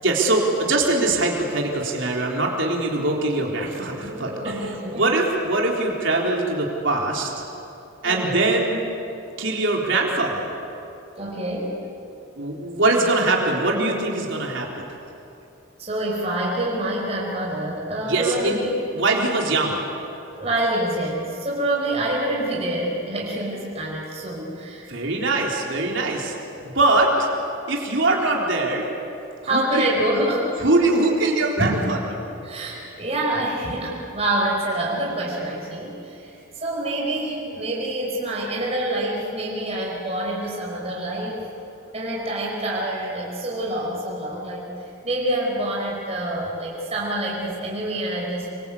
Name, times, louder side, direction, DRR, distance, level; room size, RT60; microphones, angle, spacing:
voice 1, 0.0-7.3 8.0-8.8 9.4-10.6 12.4-15.0 18.0-18.6 18.9-19.8 24.9-26.3 26.6-27.3 27.7-28.9 29.5-29.9 30.6-32.0, right 2 dB, 70° right, -1 dB, 3.8 m, -22 dB
voice 2, 3.9-5.1 8.0-8.4 11.2-11.8 15.8-18.8 20.4-24.9 29.4-30.5 31.6-31.8 32.4-41.4 41.9-48.5, right 1 dB, 30° right, -3 dB, 5.2 m, -26 dB
27.0 x 25.0 x 8.6 m, 2.8 s
head